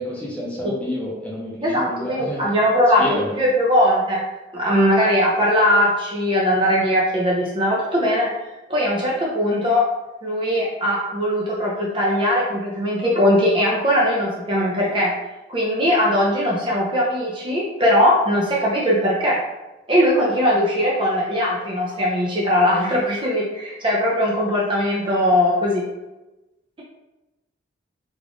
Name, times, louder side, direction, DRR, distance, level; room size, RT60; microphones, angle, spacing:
voice 1, 0.0-2.6 3.0-3.3, equal, 5° left, -5 dB, 0.7 m, -29 dB
voice 2, 1.6-4.2 4.5-8.3 8.7-9.9 10.2-15.1 15.5-19.4 19.9-25.8, equal, 25° right, -4 dB, 0.5 m, -20 dB
3.6 x 2.4 x 3.5 m, 1.0 s
head